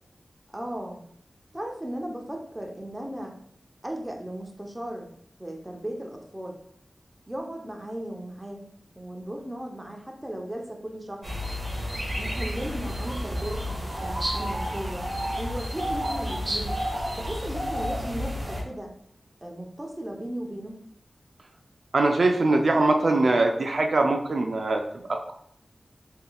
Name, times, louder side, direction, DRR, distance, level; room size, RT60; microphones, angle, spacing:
voice 1, 0.5-1.0 1.5-3.4 3.8-5.1 5.4-6.6 7.3-8.7 9.0-11.3 12.2-15.1 15.4-16.8 17.2-18.9 19.4-20.8, right 1 dB, 15° right, 1 dB, 0.8 m, -36 dB
sound 1, 11.2-18.6, equal, 40° right, 1.4 m, -31 dB
voice 2, 21.9-24.8 25.1-25.3, right 2 dB, 70° right, 3 dB, 0.4 m, -22 dB
3.8 x 3.6 x 2.3 m, 0.67 s
cardioid pair, 50°, 0 cm